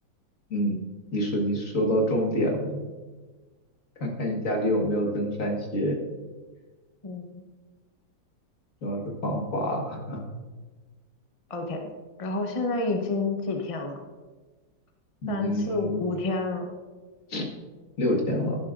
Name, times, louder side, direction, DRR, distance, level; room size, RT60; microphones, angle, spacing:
voice 1, 0.5-0.8 1.1-2.8 4.0-6.0 8.8-10.2 15.2-16.0 17.3-17.5 18.0-18.6, equal, 50° left, 0 dB, 1.8 m, -27 dB
voice 2, 7.0-7.4 11.5-11.8 12.2-14.0 15.3-16.7, left 3 dB, 30° left, 3 dB, 0.6 m, -29 dB
12.0 x 11.0 x 2.5 m, 1.3 s
omnidirectional pair, 1.9 m